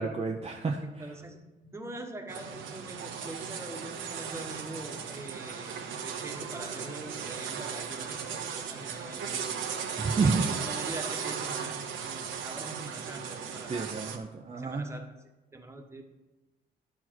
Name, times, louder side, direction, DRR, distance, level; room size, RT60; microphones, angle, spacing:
voice 1, 0.0-0.8 10.0-10.5 13.7-14.9, right 4 dB, 30° right, 0 dB, 0.8 m, -29 dB
voice 2, 0.8-9.5 10.1-14.0 14.5-15.1 15.5-16.0, right 2 dB, 15° right, 3 dB, 1.5 m, -43 dB
sound 1, 2.3-14.2, right 7 dB, 80° right, 1.1 m, -36 dB
11.5 x 4.8 x 6.1 m, 1.1 s
cardioid pair, 90°, 20 cm